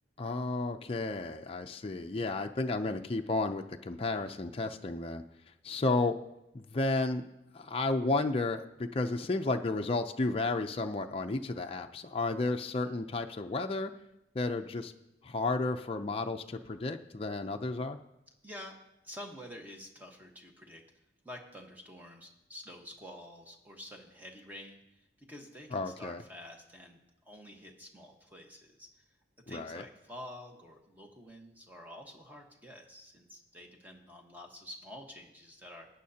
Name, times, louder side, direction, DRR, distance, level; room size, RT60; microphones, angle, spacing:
voice 1, 0.2-5.2 5.6-6.2 6.5-7.2 7.5-13.9 14.3-14.9 15.2-18.0 25.7-26.2 29.5-29.8, left 3 dB, 30° left, 4 dB, 0.5 m, -32 dB
voice 2, 18.4-18.8 19.0-20.8 21.2-24.8 25.2-27.0 27.2-28.9 29.5-35.9, left 1 dB, 10° right, 1 dB, 1.2 m, -48 dB
18.5 x 9.2 x 2.8 m, 0.89 s
head